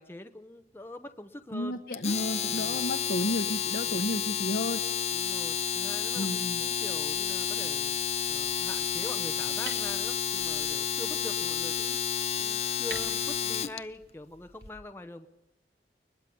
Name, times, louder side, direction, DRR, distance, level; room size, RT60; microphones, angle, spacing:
voice 1, 0.0-1.8 2.5-2.8 5.1-8.0 8.3-12.0 12.4-15.3, left 1 dB, 15° left, 7 dB, 0.8 m, -44 dB
voice 2, 1.5-4.8 6.1-6.6, left 1 dB, 65° left, 3 dB, 1.1 m, -32 dB
Domestic sounds home sounds, 1.9-13.8, left 8 dB, 35° left, 0.7 m, -30 dB
sound 1, 6.7-14.7, right 3 dB, 75° right, 5.0 m, -50 dB
23.0 x 21.0 x 7.0 m, 0.98 s
head